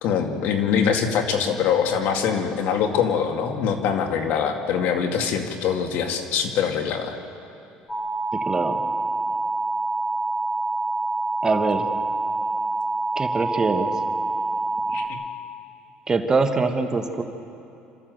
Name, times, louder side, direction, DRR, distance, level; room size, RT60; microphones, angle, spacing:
voice 1, 0.0-7.2 14.9-15.0, left 7 dB, 70° left, 4 dB, 2.2 m, -23 dB
sound 1, 7.9-15.1, right 2 dB, 20° left, 3.1 m, -26 dB
voice 2, 8.3-8.8 11.4-11.9 13.2-13.9 16.1-17.2, right 3 dB, 20° right, 5 dB, 1.4 m, -23 dB
27.5 x 13.5 x 7.9 m, 2.8 s
cardioid pair, 130°, 3 cm